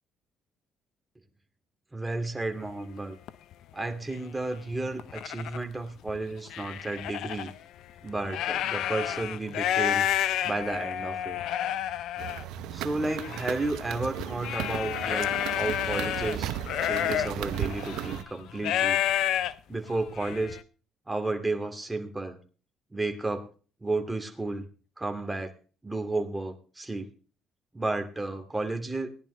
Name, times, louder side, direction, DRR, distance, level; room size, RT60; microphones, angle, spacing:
voice 1, 1.9-3.2 3.7-7.5 8.0-10.1 10.4-11.4 12.7-16.5 16.8-19.0 19.7-20.6 21.1-22.4 22.9-23.5 23.8-24.7 25.0-25.5 25.8-27.1 27.7-29.1, right 2 dB, 15° right, 4 dB, 2.5 m, -32 dB
sound 1, 2.6-2.7 3.3-3.5 4.2-4.3 4.7-5.6 6.1-7.5 8.1-20.6, left 11 dB, 75° left, 0.6 m, -30 dB
sound 2, 12.2-18.2, right 12 dB, 80° right, 0.7 m, -35 dB
18.0 x 10.5 x 3.3 m, 0.37 s
hypercardioid pair, 55°, 0 cm